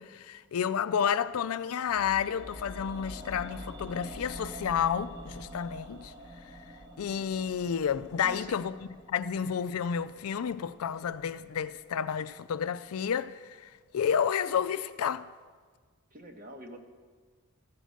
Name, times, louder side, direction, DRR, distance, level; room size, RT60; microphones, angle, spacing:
voice 1, 0.0-6.1 7.0-8.8 9.1-15.3, left 7 dB, 80° left, 0.4 m, -31 dB
sound 1, 1.9-12.0 12.3-12.4, equal, 15° right, 0.9 m, -47 dB
voice 2, 8.2-8.6 16.1-16.8, equal, 40° right, 1.2 m, -45 dB
14.0 x 6.7 x 6.3 m
head